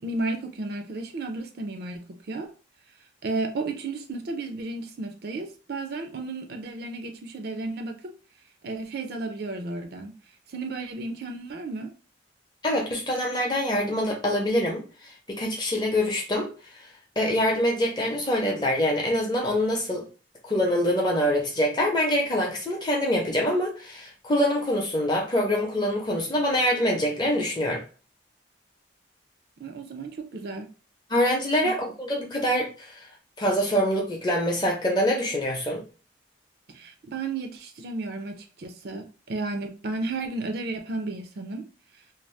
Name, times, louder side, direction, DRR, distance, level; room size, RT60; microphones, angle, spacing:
voice 1, 0.0-2.5 3.2-8.1 8.6-10.1 10.5-11.9 29.6-30.7 31.6-31.7 36.7-41.7 41.9-42.0, right 3 dB, 50° right, 0.4 m, -33 dB
voice 2, 12.6-14.8 15.3-16.5 17.2-20.0 20.4-27.8 31.1-32.9 33.4-35.8, equal, 20° left, 0.6 m, -25 dB
2.6 x 2.0 x 3.1 m
head